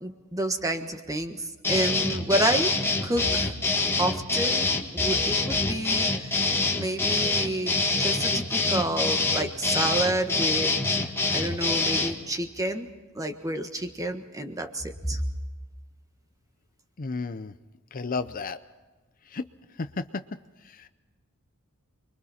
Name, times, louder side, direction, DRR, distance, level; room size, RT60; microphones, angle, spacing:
voice 1, 0.0-2.7 3.0-3.6 4.0-6.4 6.7-12.9 13.1-15.2, right 1 dB, 15° right, 6 dB, 1.4 m, -29 dB
sound 1, 1.6-12.2, left 3 dB, 10° left, 1.6 m, -25 dB
voice 2, 17.0-17.5 17.9-18.6 19.3-19.5 19.8-20.2 20.7-20.9, left 4 dB, 40° left, 11 dB, 0.6 m, -32 dB
29.0 x 23.0 x 4.3 m, 1.3 s
head